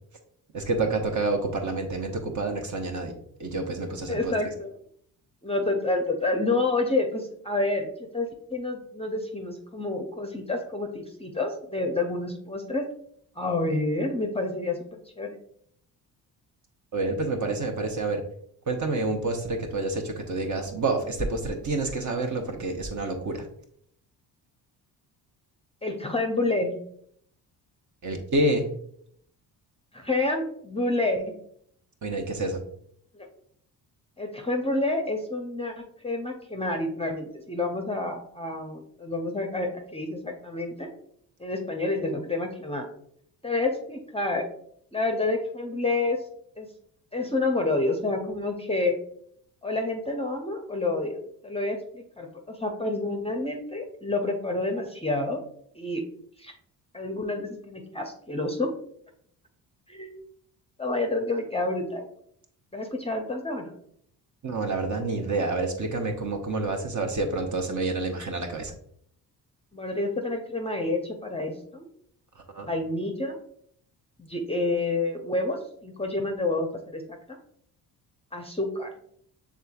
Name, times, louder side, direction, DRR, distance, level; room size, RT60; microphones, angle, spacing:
voice 1, 0.5-4.3 16.9-18.2 18.7-23.5 28.0-28.7 32.0-32.6 64.4-68.7 72.5-72.7, right 2 dB, 35° right, 4 dB, 1.0 m, -28 dB
voice 2, 4.1-4.7 5.4-12.9 13.4-15.4 25.8-26.7 29.9-31.3 33.1-33.3 34.2-40.9 41.4-42.9 43.4-44.5 44.9-46.2 46.6-46.7 47.1-49.0 49.6-51.2 51.4-55.4 55.7-56.0 56.4-56.5 56.9-58.7 59.9-60.1 60.8-62.0 62.7-63.7 69.7-71.9 72.6-73.4 74.2-77.0 77.3-77.4 78.3-78.9, left 2 dB, 10° left, 3 dB, 0.7 m, -29 dB
6.5 x 3.5 x 2.4 m, 0.67 s
hypercardioid pair, 50°, 49 cm